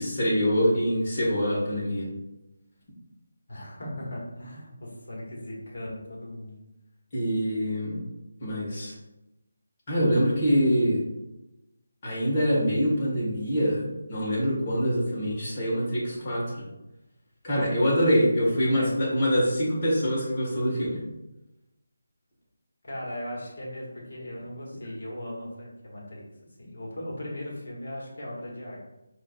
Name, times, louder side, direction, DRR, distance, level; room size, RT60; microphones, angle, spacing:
voice 1, 0.0-2.1 7.1-8.0 8.4-8.9 9.9-11.0 12.0-16.6 17.4-21.0, equal, 35° left, -6 dB, 1.3 m, -25 dB
voice 2, 3.5-6.6 18.6-19.0 22.8-26.2 26.6-28.8, left 1 dB, 60° left, -4 dB, 1.4 m, -38 dB
4.3 x 2.6 x 2.3 m, 0.94 s
figure-of-eight pair, 165°, 0 cm